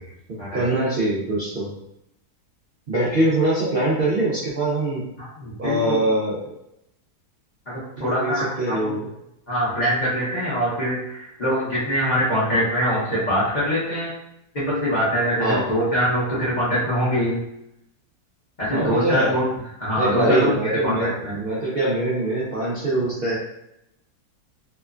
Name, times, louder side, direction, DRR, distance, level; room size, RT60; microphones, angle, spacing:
voice 1, 0.3-1.7 2.9-5.0 5.6-6.5 8.0-9.0 15.4-15.7 18.7-19.3 20.0-23.4, right 1 dB, 90° right, -8 dB, 0.4 m, -23 dB
voice 2, 5.2-6.0 7.7-9.0 9.5-14.1 14.5-17.4 18.6-19.4 19.8-21.4, equal, 40° left, -9 dB, 0.7 m, -23 dB
2.9 x 2.1 x 2.4 m, 0.81 s
omnidirectional pair, 1.7 m